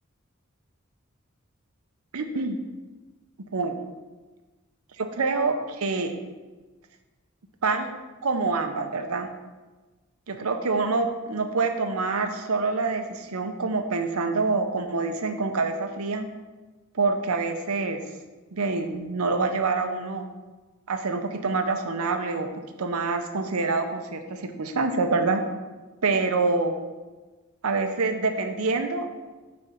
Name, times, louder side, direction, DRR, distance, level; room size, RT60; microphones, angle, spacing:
voice 1, 2.1-2.6 3.5-3.8 5.0-6.1 7.6-7.9 8.2-9.3 10.3-16.3 16.9-18.0 18.5-20.2 20.9-22.5 22.8-25.4 26.0-26.8 27.6-29.1, right 3 dB, 85° right, 6 dB, 0.8 m, -26 dB
6.3 x 4.3 x 5.8 m, 1.2 s
head